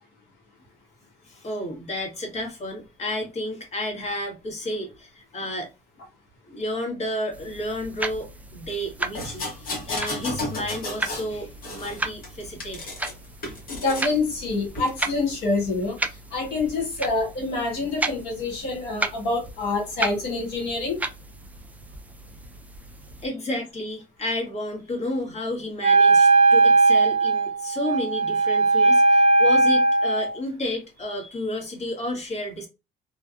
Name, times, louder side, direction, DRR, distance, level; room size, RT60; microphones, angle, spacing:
voice 1, 1.2-5.7 6.5-12.9 23.2-32.7, left 1 dB, 40° left, 1.3 m, -31 dB
sound 1, 7.3-23.3, right 2 dB, 10° right, 0.3 m, -35 dB
sound 2, 9.1-11.3 11.6-13.1 13.4-14.1 14.7-14.9, left 2 dB, 60° left, 1.2 m, -33 dB
voice 2, 13.7-16.0 16.3-21.0, left 3 dB, 85° left, 1.5 m, -26 dB
Wind instrument woodwind instrument, 25.8-30.3, right 3 dB, 35° right, 0.8 m, -18 dB
2.5 x 2.3 x 2.5 m
cardioid pair, 110°, 17 cm